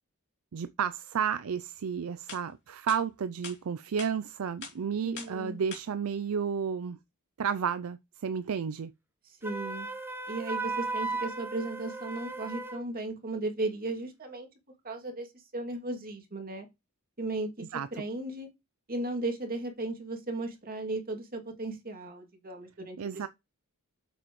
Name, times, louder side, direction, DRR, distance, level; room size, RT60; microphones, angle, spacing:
voice 1, 0.5-7.0 7.4-8.9 17.7-17.9 23.0-23.3, right 7 dB, 65° right, 0.4 m, -32 dB
sound 1, 1.8-1.9 2.3-2.4 2.9-3.0 3.4-3.6 4.0-4.1 4.6-4.8 5.2-5.4 5.7-5.8, left 6 dB, 55° left, 3.0 m, -42 dB
voice 2, 5.0-5.6 9.2-9.9 10.3-14.5 14.8-16.7 17.2-17.5 17.9-18.5 18.9-23.3, right 2 dB, 40° right, 2.6 m, -36 dB
Wind instrument woodwind instrument, 9.4-12.8, right 3 dB, 10° right, 0.9 m, -36 dB
7.7 x 7.5 x 3.1 m
head